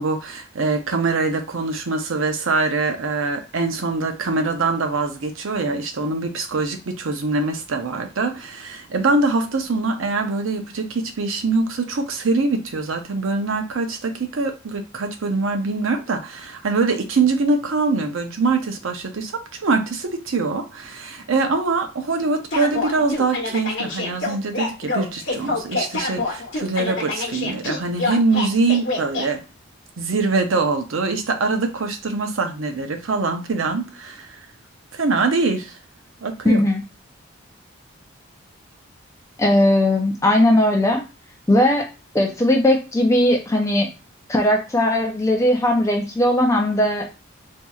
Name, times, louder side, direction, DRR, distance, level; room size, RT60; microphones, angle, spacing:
voice 1, 0.0-29.4 30.0-34.4 34.9-35.8 36.2-36.6, right 3 dB, 75° right, 6 dB, 0.6 m, -23 dB
sound 1, 22.5-29.3, left 2 dB, 60° left, 1.0 m, -26 dB
voice 2, 36.4-36.8 39.4-41.0 41.5-41.9 42.1-43.9 44.3-47.1, left 1 dB, 15° left, 2 dB, 0.5 m, -18 dB
4.2 x 2.7 x 2.3 m, 0.31 s
head